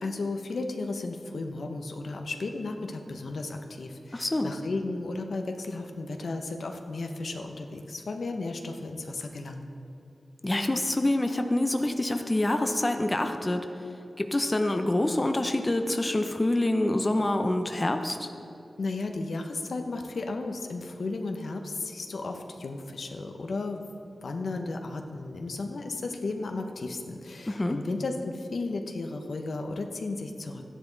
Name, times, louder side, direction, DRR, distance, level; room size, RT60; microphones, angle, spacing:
voice 1, 0.0-9.7 18.8-23.8 24.2-30.6, left 3 dB, 75° left, 4 dB, 0.9 m, -34 dB
voice 2, 4.1-4.5 10.4-13.7 14.2-18.3 27.5-27.8, left 1 dB, 25° left, 6 dB, 0.7 m, -26 dB
13.0 x 10.5 x 4.0 m, 2.8 s
cardioid pair, 65°, 0 cm